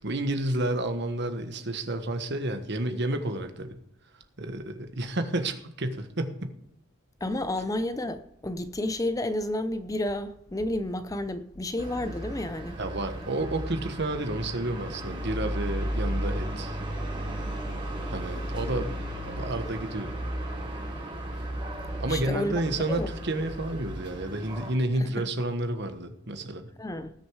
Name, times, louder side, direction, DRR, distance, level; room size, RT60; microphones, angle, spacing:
voice 1, 0.0-3.8 4.4-6.5 12.8-16.8 18.1-18.9 19.2-20.1 22.0-26.7, right 1 dB, 55° right, 1.3 m, -30 dB
voice 2, 7.2-12.8 22.1-22.6 22.9-23.1 25.0-25.2 26.8-27.1, left 1 dB, 15° left, 0.6 m, -31 dB
sound 1, 11.8-24.7, right 1 dB, 25° right, 3.4 m, -34 dB
18.5 x 6.7 x 4.8 m
head